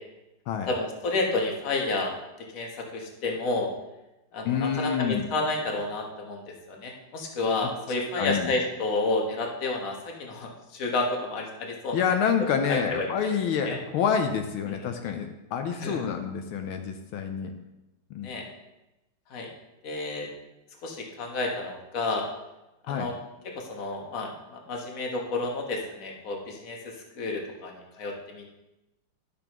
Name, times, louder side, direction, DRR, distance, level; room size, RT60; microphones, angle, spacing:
voice 1, 0.7-3.7 4.3-12.0 12.7-13.3 13.6-13.8 14.7-14.8 15.8-16.0 18.2-18.5 19.3-19.5 19.8-20.3 20.8-22.3 22.9-23.1 23.6-28.5, left 2 dB, 45° left, 1 dB, 1.4 m, -30 dB
voice 2, 4.4-5.3 7.6-7.7 8.2-8.5 11.9-17.5 18.1-18.3 22.9-23.1, left 7 dB, 85° left, 5 dB, 1.5 m, -28 dB
12.0 x 6.1 x 3.0 m, 0.96 s
omnidirectional pair, 2.3 m